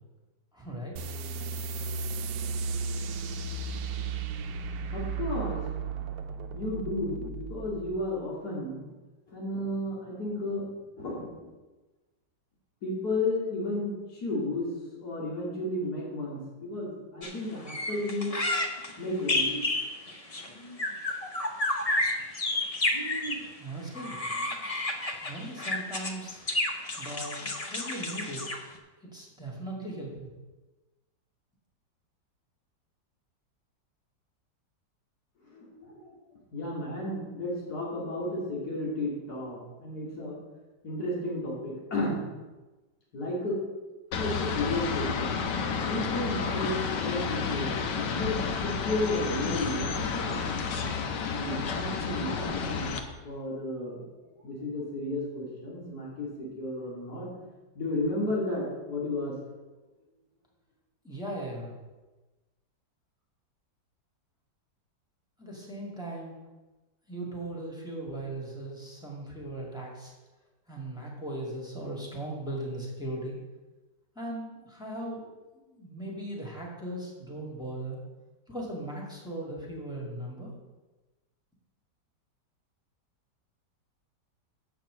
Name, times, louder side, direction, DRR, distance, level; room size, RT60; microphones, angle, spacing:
voice 1, 0.5-0.9 23.6-24.3 25.2-26.4 27.0-28.5 29.0-30.3 61.0-61.7 65.4-66.4 67.1-70.1 70.7-73.4 74.2-75.3 75.5-78.0 78.5-80.5, right 1 dB, ahead, -3 dB, 1.9 m, -38 dB
sound 1, 1.0-8.1, right 4 dB, 70° right, 1.0 m, -35 dB
voice 2, 4.9-5.6 6.3-8.9 9.3-10.7 11.0-11.5 12.8-14.7 15.0-18.4 19.0-19.5 35.5-36.1 36.5-40.4 40.8-42.2 43.1-43.6 44.2-45.6 45.8-47.7 48.1-48.4 48.6-50.5 51.3-53.0 53.2-54.1 54.4-57.3 57.8-59.3, left 1 dB, 60° left, -5 dB, 3.0 m, -33 dB
sound 2, 17.2-17.3 17.7-23.5 23.9-28.8, left 2 dB, 35° left, 0.5 m, -31 dB
sound 3, 44.1-53.0, left 5 dB, 80° left, 1.5 m, -31 dB
7.5 x 5.9 x 7.4 m, 1.2 s
omnidirectional pair, 1.9 m